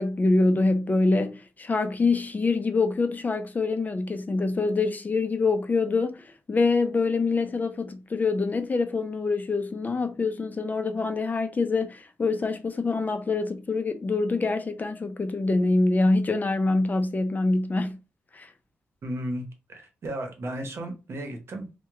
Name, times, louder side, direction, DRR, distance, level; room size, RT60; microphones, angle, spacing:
voice 1, 0.0-18.0 18.3-18.5, left 3 dB, 35° left, 0.5 m, -25 dB
voice 2, 19.0-21.8, right 1 dB, 60° right, 0.9 m, -34 dB
2.9 x 2.2 x 3.4 m
cardioid pair, 70°, 5 cm